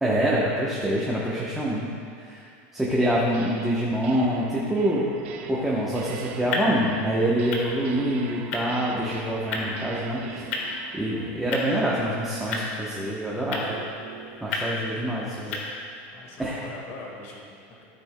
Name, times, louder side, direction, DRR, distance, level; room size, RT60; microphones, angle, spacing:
voice 1, 0.0-1.9 2.2-2.4 2.7-5.0 5.5-10.5 10.9-13.8 14.4-15.6 16.4-16.6, right 1 dB, 5° right, -6 dB, 0.9 m, -26 dB
sound 1, 3.3-3.7 4.0-14.4, right 6 dB, 80° right, 0.9 m, -41 dB
sound 2, 5.6-16.1, left 2 dB, 75° left, 1.5 m, -35 dB
voice 2, 14.9-15.8 16.1-17.9, left 3 dB, 45° left, -1 dB, 1.7 m, -44 dB
13.5 x 8.5 x 2.2 m, 2.5 s
supercardioid pair, 160°, 7 cm